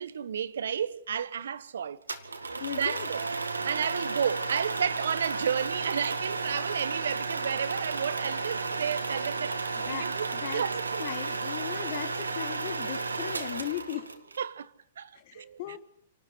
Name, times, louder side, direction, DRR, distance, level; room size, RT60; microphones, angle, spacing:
voice 1, 0.0-2.0 2.8-3.3 3.6-11.1 14.4-15.8, right 8 dB, 70° right, 1.1 m, -32 dB
sound 1, 2.1-14.4, right 3 dB, 90° right, 2.1 m, -33 dB
voice 2, 2.6-3.1 9.8-10.6 11.0-14.0 15.1-15.8, left 13 dB, 50° left, 1.4 m, -38 dB
27.5 x 12.5 x 9.5 m
hypercardioid pair, 115°, 0 cm